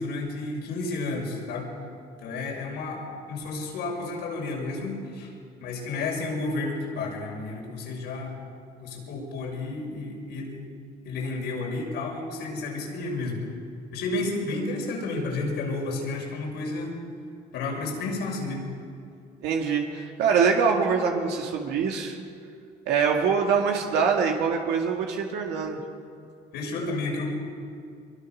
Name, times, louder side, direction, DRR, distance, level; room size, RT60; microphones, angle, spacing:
voice 1, 0.0-1.7 2.2-5.3 5.6-8.4 8.8-10.6 11.0-13.4 13.9-16.9 17.5-18.6 26.5-27.2, left 3 dB, 85° left, -1 dB, 6.5 m, -31 dB
voice 2, 19.4-22.2 22.9-25.8, right 6 dB, 85° right, 1 dB, 2.3 m, -24 dB
24.5 x 23.5 x 6.4 m, 2.3 s
cardioid pair, 110°, 17 cm